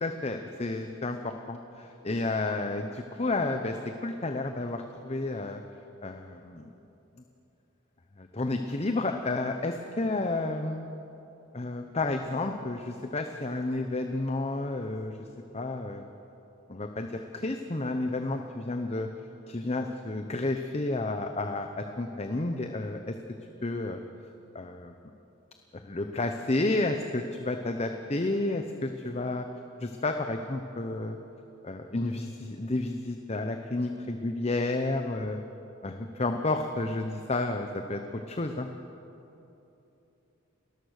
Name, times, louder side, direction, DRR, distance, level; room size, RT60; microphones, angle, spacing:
voice 1, 0.0-5.6 6.0-6.7 8.2-10.9 11.5-15.3 15.5-16.1 16.7-19.1 19.5-23.2 23.6-24.0 24.5-24.9 25.7-29.5 29.8-31.2 31.6-35.4 35.8-38.7, left 2 dB, 30° left, 6 dB, 0.8 m, -31 dB
30.0 x 13.5 x 6.6 m, 3.0 s
head